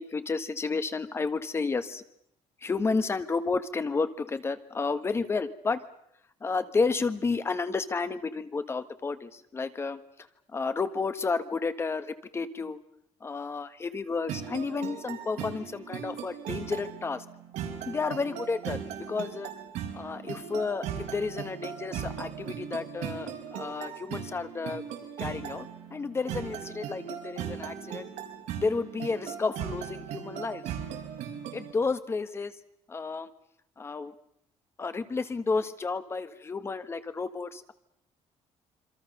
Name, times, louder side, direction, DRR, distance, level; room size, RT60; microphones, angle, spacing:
voice 1, 0.0-2.0 2.6-5.8 6.4-10.0 10.5-12.8 13.2-17.2 17.9-18.8 19.1-19.5 19.9-24.8 25.2-28.0 28.6-30.6 31.5-32.5 32.9-33.3 33.8-34.1 34.8-37.7, left 4 dB, 20° left, 11 dB, 1.4 m, -31 dB
sound 1, 14.3-31.7, right 8 dB, 85° right, 5.0 m, -38 dB
27.0 x 26.0 x 6.7 m, 0.76 s
cardioid pair, 170°, 12 cm